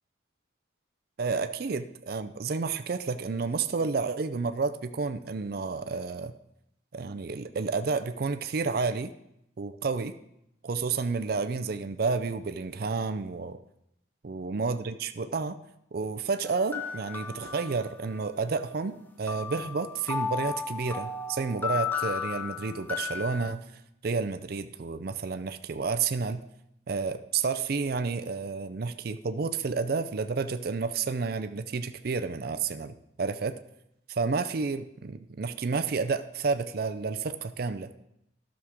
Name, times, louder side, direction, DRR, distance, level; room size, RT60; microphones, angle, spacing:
voice 1, 1.2-6.3 6.9-9.1 9.6-10.2 10.6-13.6 14.2-15.5 15.9-23.6 24.0-26.4 26.9-33.6 34.1-37.9, right 4 dB, 50° right, 10 dB, 0.4 m, -30 dB
sound 1, 16.4-18.3 19.3-23.5, left 5 dB, 10° left, 0.5 m, -35 dB
12.5 x 6.3 x 3.6 m, 0.80 s
head